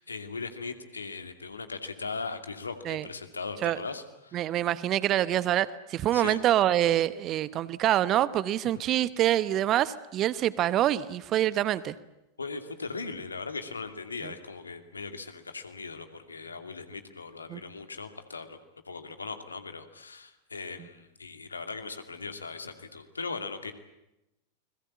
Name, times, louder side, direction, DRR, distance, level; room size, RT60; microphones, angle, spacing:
voice 1, 0.0-4.4 6.1-6.4 8.6-8.7 12.4-18.6 18.9-23.7, left 4 dB, 75° left, 8 dB, 2.5 m, -39 dB
voice 2, 4.3-11.9 14.2-14.3 17.5-17.6, right 12 dB, 35° right, 17 dB, 1.0 m, -26 dB
29.5 x 21.5 x 8.7 m, 0.93 s
figure-of-eight pair, 90°, 0 cm